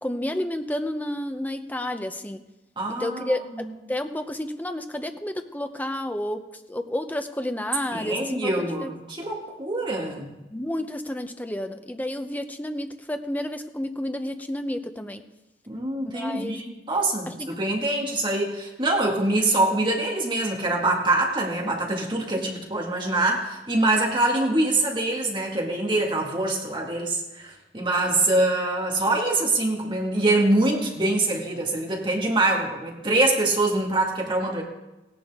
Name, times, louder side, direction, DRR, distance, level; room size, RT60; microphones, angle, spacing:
voice 1, 0.0-2.4 3.0-6.4 6.7-8.9 10.5-15.2 16.1-16.6 17.3-17.5, left 1 dB, 10° left, 7 dB, 0.6 m, -30 dB
voice 2, 2.8-3.3 7.9-10.3 15.7-34.6, right 2 dB, 25° right, -1 dB, 2.0 m, -24 dB
16.5 x 10.5 x 3.6 m, 1.0 s
head